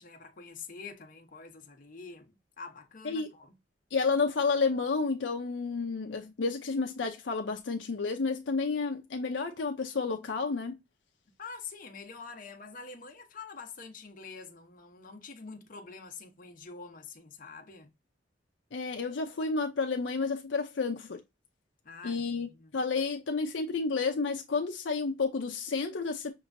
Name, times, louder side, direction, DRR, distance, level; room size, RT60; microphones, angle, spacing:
voice 1, 0.0-3.6 11.4-17.9 21.8-22.8, left 4 dB, 50° left, 0.9 m, -46 dB
voice 2, 3.9-10.8 18.7-21.2 22.0-22.5 22.7-26.3, left 4 dB, 80° left, 0.6 m, -30 dB
5.9 x 2.9 x 2.6 m
head